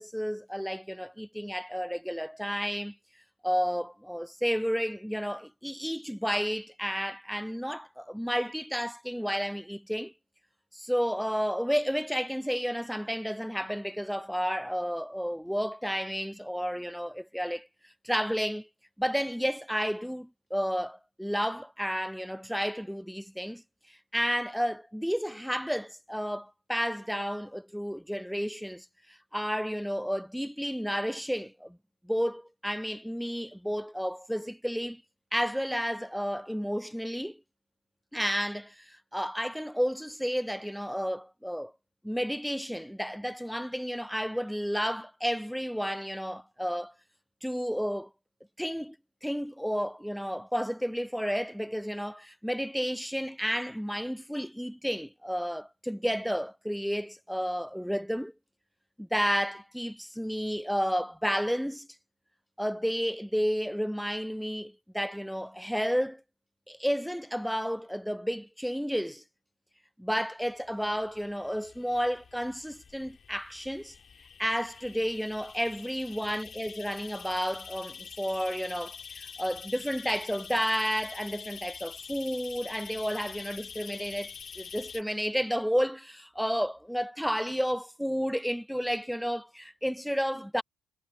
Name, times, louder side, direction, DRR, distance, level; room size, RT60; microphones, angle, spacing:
voice 1, 0.0-3.0 3.4-10.1 10.7-17.7 18.0-18.7 19.0-23.6 23.9-31.8 32.0-35.0 35.3-37.4 38.1-41.7 42.0-46.9 47.4-48.1 48.6-49.0 49.2-58.3 59.0-61.9 62.6-66.2 66.7-69.2 70.0-73.9 74.4-90.6, equal, ahead, 0.3 m, -31 dB
sound 1, 70.6-85.0, left 6 dB, 45° left, 1.9 m, -46 dB
figure-of-eight pair, 45°, 0 cm